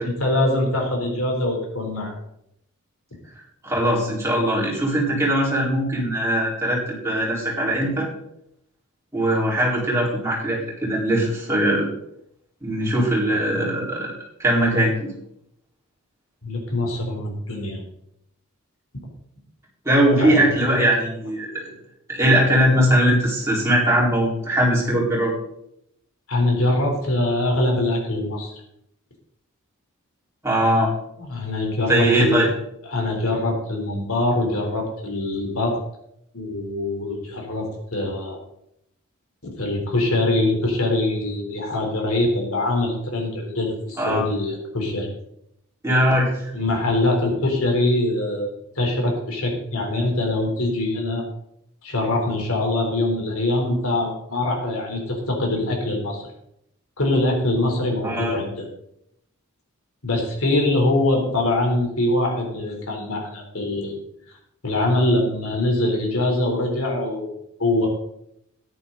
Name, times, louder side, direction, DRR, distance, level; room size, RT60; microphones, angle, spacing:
voice 1, 0.2-2.2 16.4-17.8 18.9-19.1 20.1-20.4 26.3-28.6 31.2-32.4 32.9-35.8 36.3-38.4 39.6-45.1 46.5-51.3 51.8-56.3 57.0-58.7 60.0-63.9 64.6-67.9, left 2 dB, 70° left, 1 dB, 3.8 m, -23 dB
voice 2, 3.6-8.1 9.1-11.9 12.6-14.1 14.4-15.1 19.8-21.7 22.1-25.3 30.4-30.9 31.9-32.5 44.0-44.2 45.8-46.5 58.0-58.4, right 1 dB, 15° right, -5 dB, 4.5 m, -20 dB
14.0 x 10.5 x 4.0 m, 0.77 s
head